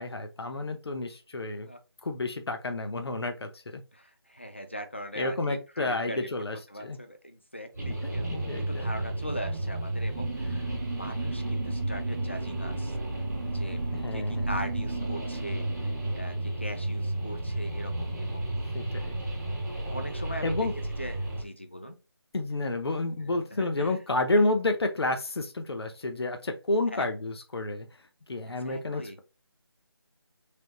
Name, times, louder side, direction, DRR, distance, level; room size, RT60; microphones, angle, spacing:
voice 1, 0.0-1.7 2.0-3.8 5.2-7.0 8.3-8.9 13.9-14.5 18.7-19.2 20.4-20.7 22.3-27.9 28.3-29.2, left 2 dB, 70° left, 6 dB, 0.7 m, -30 dB
voice 2, 3.9-6.3 6.7-13.0 13.5-13.8 14.1-18.5 18.9-19.1 19.9-21.9 23.2-23.3 23.6-24.0 26.9-27.1 28.5-29.2, equal, 25° left, 7 dB, 0.4 m, -41 dB
sound 1, 7.7-21.4, right 1 dB, 40° right, 0.9 m, -32 dB
sound 2, 10.1-18.1, right 4 dB, 65° right, 0.5 m, -40 dB
3.4 x 3.0 x 2.7 m, 0.29 s
figure-of-eight pair, 180°, 14 cm